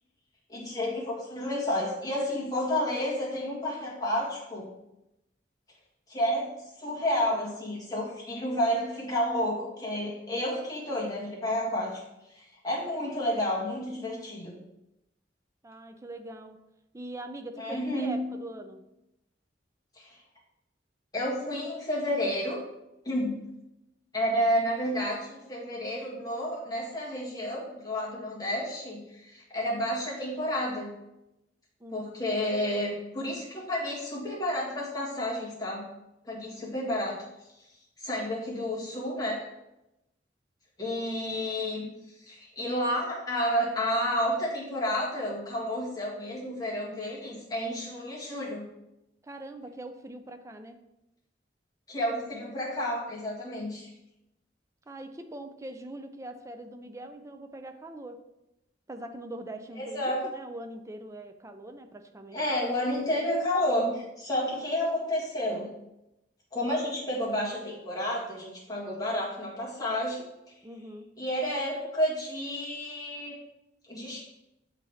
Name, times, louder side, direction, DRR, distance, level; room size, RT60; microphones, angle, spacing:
voice 1, 0.5-4.7 6.1-12.0 12.3-14.6 17.6-18.4 20.0-20.2 21.1-22.6 23.0-23.5 24.1-30.9 31.9-35.9 36.2-37.2 38.0-39.5 40.8-41.9 42.2-48.7 51.9-53.9 59.8-60.3 62.3-65.7 66.5-70.2 71.2-73.4 73.9-74.2, equal, 20° left, -6 dB, 1.8 m, -30 dB
voice 2, 15.6-16.6 16.9-18.8 31.8-32.4 49.2-50.8 54.9-58.2 58.9-62.4 70.6-71.1, right 1 dB, 15° right, 7 dB, 0.4 m, -42 dB
8.0 x 3.9 x 3.2 m, 0.90 s
head